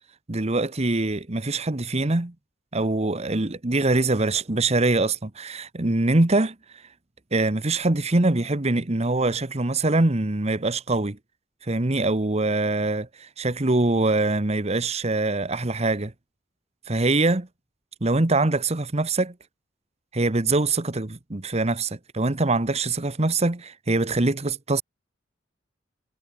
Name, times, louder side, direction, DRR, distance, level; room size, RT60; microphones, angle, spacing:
voice 1, 0.3-2.3 2.7-6.5 7.3-11.2 11.7-16.1 16.9-17.5 18.0-19.3 20.1-24.8, right 2 dB, 35° right, 1.1 m, -23 dB
head